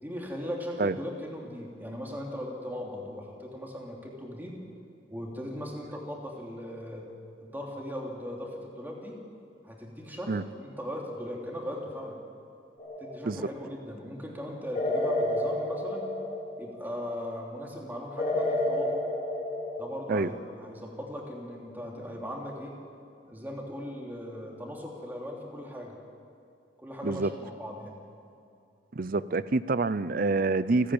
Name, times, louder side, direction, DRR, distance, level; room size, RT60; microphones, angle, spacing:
voice 1, 0.0-4.6 5.1-7.1 7.4-9.2 9.6-12.1 13.0-16.0 16.6-18.9 19.8-22.7 23.3-25.9 26.8-28.0, equal, 10° right, -1 dB, 3.1 m, -38 dB
sound 1, 12.8-13.4 14.7-16.8 18.2-20.2, left 1 dB, 35° left, 4.4 m, -30 dB
voice 2, 28.9-30.9, right 3 dB, 50° right, 16 dB, 0.6 m, -27 dB
30.0 x 10.0 x 8.9 m, 2.5 s
head